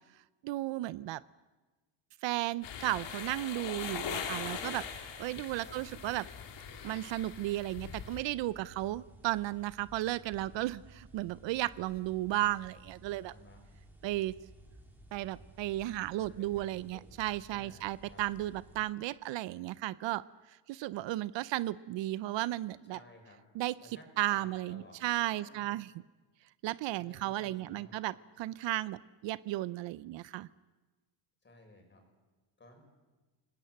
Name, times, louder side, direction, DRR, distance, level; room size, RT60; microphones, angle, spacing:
voice 1, 0.4-1.2 2.2-4.8 5.2-6.3 6.8-13.3 14.0-14.3 15.1-20.2 20.7-23.0 23.5-25.9 26.6-30.5, right 16 dB, 70° right, 18 dB, 0.7 m, -34 dB
sound 1, 2.6-8.2, left 8 dB, 65° left, 3.2 m, -41 dB
sound 2, 3.6-18.9, right 1 dB, 5° right, 4.0 m, -56 dB
voice 2, 5.2-5.8 13.2-13.6 16.4-18.2 22.9-23.4 23.8-24.1 24.3-25.8 26.9-27.9 31.4-32.0 32.6-32.8, left 2 dB, 25° left, 4 dB, 6.2 m, -57 dB
28.5 x 19.5 x 7.9 m, 1.2 s
cardioid pair, 130°, 46 cm